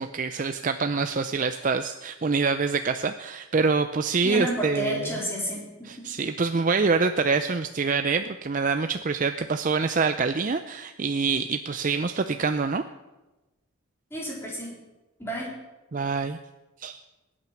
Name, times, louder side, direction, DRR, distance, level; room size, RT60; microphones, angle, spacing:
voice 1, 0.0-5.1 5.8-12.8 15.9-16.4 16.8-17.0, right 4 dB, 40° right, 8 dB, 0.5 m, -26 dB
voice 2, 4.2-5.6 6.0-6.1 14.1-14.7 15.2-15.5, right 1 dB, 10° left, -4 dB, 3.8 m, -30 dB
21.0 x 9.0 x 5.8 m, 1.1 s
head